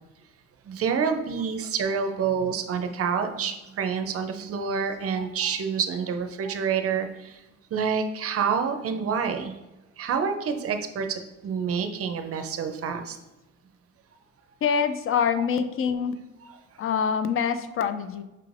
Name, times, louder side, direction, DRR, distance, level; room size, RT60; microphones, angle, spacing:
voice 1, 0.7-7.3 7.7-9.5 10.0-13.2, right 6 dB, 50° right, 6 dB, 0.5 m, -28 dB
voice 2, 14.6-16.2 16.8-18.2, left 7 dB, 45° left, 11 dB, 0.4 m, -25 dB
5.7 x 3.1 x 2.5 m, 1.0 s
cardioid pair, 90°, 30 cm